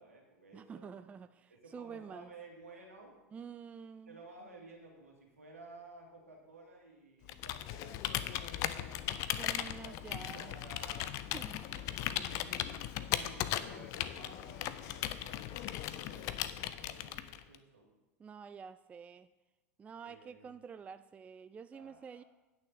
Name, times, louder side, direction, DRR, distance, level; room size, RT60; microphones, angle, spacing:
voice 1, 0.0-1.1 1.5-3.1 4.1-11.1 12.0-17.9 20.0-20.6 21.7-22.2, right 2 dB, 80° right, 0 dB, 2.4 m, -55 dB
voice 2, 0.5-2.3 3.3-4.2 9.4-10.5 11.3-12.0 18.2-19.3 19.8-22.2, right 6 dB, 15° right, 13 dB, 0.3 m, -48 dB
Computer keyboard, 7.3-17.6, left 12 dB, 45° left, 0.6 m, -38 dB
9.2 x 6.4 x 7.0 m, 1.1 s
figure-of-eight pair, 85°, 8 cm